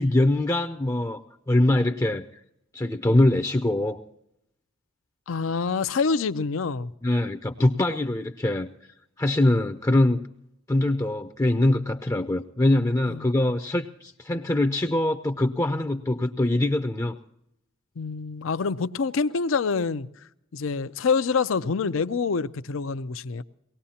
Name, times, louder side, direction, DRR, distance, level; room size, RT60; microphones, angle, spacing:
voice 1, 0.0-2.3 2.7-4.0 7.0-8.7 9.2-10.3 10.7-17.2, left 1 dB, 15° left, 0.5 m, -23 dB
voice 2, 5.3-6.9 13.1-13.3 18.0-20.1 20.5-23.4, left 5 dB, 90° left, 0.5 m, -26 dB
23.0 x 18.5 x 2.8 m
head